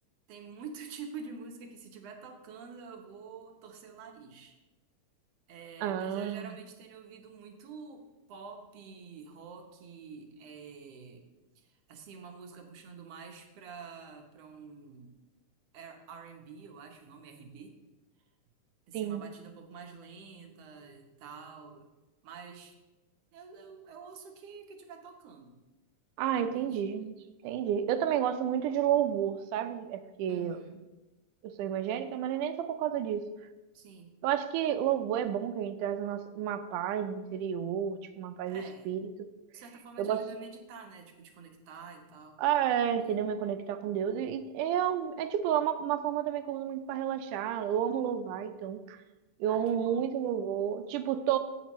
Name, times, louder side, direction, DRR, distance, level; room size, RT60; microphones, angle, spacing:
voice 1, 0.3-4.6 5.5-11.3 11.6-15.2 15.7-17.8 18.9-21.9 22.2-22.8 23.3-25.5 26.2-26.8 30.3-30.8 33.7-34.1 38.4-38.9 39.5-42.4 43.0-43.2 49.5-50.0, right 5 dB, 65° right, 3 dB, 1.8 m, -48 dB
voice 2, 5.8-6.5 18.9-19.2 26.2-27.2 27.4-30.6 31.4-33.3 34.2-39.1 40.0-40.3 42.4-49.0 49.4-51.4, right 9 dB, 90° right, 10 dB, 2.2 m, -31 dB
16.0 x 6.1 x 3.1 m, 1.1 s
omnidirectional pair, 3.6 m